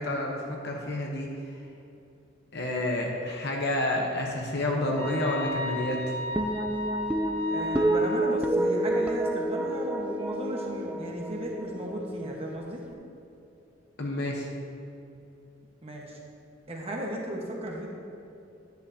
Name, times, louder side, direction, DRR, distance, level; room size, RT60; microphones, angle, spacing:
voice 1, 0.0-1.6 2.5-6.2 14.0-14.5, left 1 dB, 60° left, -1 dB, 0.9 m, -29 dB
sound 1, 5.0-8.2, left 1 dB, 15° left, 1.6 m, -34 dB
sound 2, 6.4-12.9, right 1 dB, 5° right, 0.4 m, -29 dB
voice 2, 7.5-12.8 15.8-16.2 16.7-17.9, equal, 30° right, -1 dB, 1.3 m, -35 dB
10.5 x 9.6 x 2.8 m, 2.7 s
head